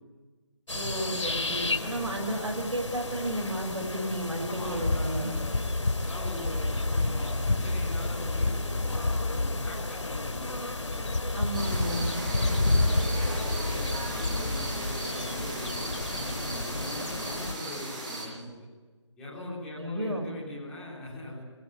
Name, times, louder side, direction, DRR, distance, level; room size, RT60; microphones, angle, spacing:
sound 1, 0.7-17.5, left 2 dB, 80° left, 3.5 m, -30 dB
voice 1, 0.7-5.3 11.3-12.1 19.8-20.3, right 1 dB, 80° right, -1 dB, 6.1 m, -33 dB
voice 2, 4.4-5.5 6.0-11.1 12.2-18.7 19.2-21.4, left 1 dB, 5° left, -8 dB, 4.1 m, -42 dB
sound 2, 11.5-18.2, right 1 dB, 15° right, 5.4 m, -36 dB
21.0 x 19.5 x 9.6 m, 1.3 s
figure-of-eight pair, 175°, 16 cm